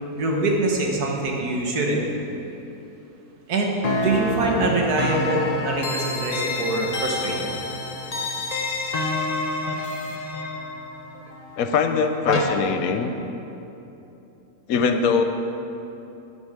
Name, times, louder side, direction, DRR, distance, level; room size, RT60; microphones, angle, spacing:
voice 1, 0.2-2.1 3.5-7.6, right 2 dB, 80° right, 0 dB, 1.8 m, -24 dB
sound 1, 3.8-12.4, left 2 dB, 35° left, 0.6 m, -28 dB
voice 2, 11.6-13.1 14.7-15.2, left 5 dB, 70° left, 6 dB, 1.1 m, -22 dB
11.0 x 6.3 x 6.4 m, 2.9 s
omnidirectional pair, 1.6 m